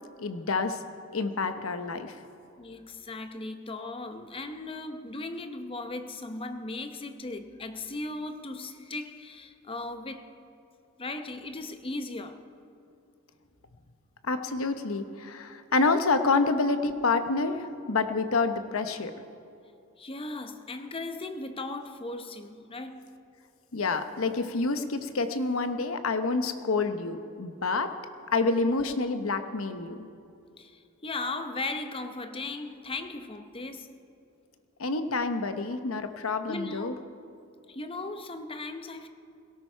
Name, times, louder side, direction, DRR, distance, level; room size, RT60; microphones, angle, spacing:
voice 1, 0.2-0.8 1.1-2.1 14.2-19.1 23.7-27.9 28.3-30.1 34.8-36.9, left 3 dB, 75° left, 0.9 m, -28 dB
voice 2, 2.6-10.3 11.0-12.5 20.0-23.2 30.6-34.0 36.5-37.0 37.7-39.1, left 2 dB, 25° left, 0.8 m, -37 dB
17.5 x 17.0 x 4.5 m
head